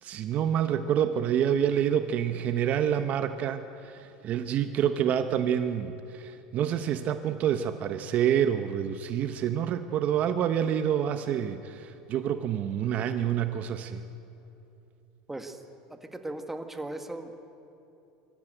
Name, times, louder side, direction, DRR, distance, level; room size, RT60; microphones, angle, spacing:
voice 1, 0.0-14.0, right 9 dB, 50° right, 10 dB, 0.9 m, -27 dB
voice 2, 15.3-15.6 15.9-17.3, right 2 dB, 10° right, 7 dB, 1.7 m, -37 dB
22.5 x 14.0 x 9.1 m, 2.8 s
supercardioid pair, 105°, 3 cm